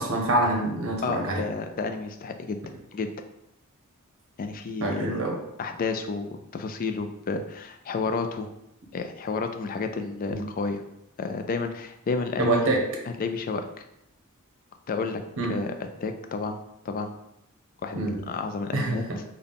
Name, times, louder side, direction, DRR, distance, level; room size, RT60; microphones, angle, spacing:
voice 1, 0.0-1.4 4.8-5.3 10.3-10.4 12.4-12.8 15.4-15.6 17.9-18.2 18.7-19.2, right 2 dB, 65° right, 1 dB, 0.8 m, -26 dB
voice 2, 1.0-2.6 2.9-3.1 4.4-5.2 5.6-8.5 8.9-10.8 11.2-12.7 13.2-13.8 14.9-15.2 15.5-15.7 16.0-16.6 16.9-17.1 17.8-18.0 18.3-19.2, left 4 dB, 40° left, 7 dB, 0.3 m, -31 dB
3.8 x 2.2 x 3.5 m, 0.83 s
head